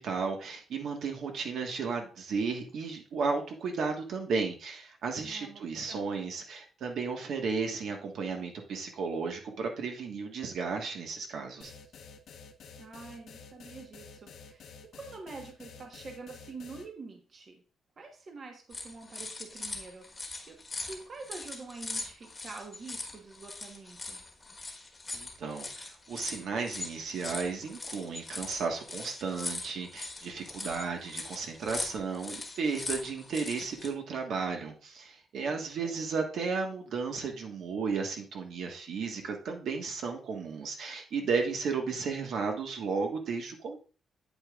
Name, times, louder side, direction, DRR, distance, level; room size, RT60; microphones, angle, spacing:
voice 1, 0.0-11.7 25.1-43.8, right 5 dB, 65° right, 3 dB, 1.5 m, -34 dB
voice 2, 5.2-5.6 5.9-6.2 12.8-17.6 18.0-24.2 35.4-35.9, right 3 dB, 35° right, 2 dB, 1.2 m, -46 dB
sound 1, 11.6-16.9, left 5 dB, 65° left, 1.0 m, -50 dB
sound 2, 18.7-33.9, left 3 dB, 15° left, 1.3 m, -41 dB
8.6 x 8.6 x 2.4 m, 0.37 s
cardioid pair, 165°, 0 cm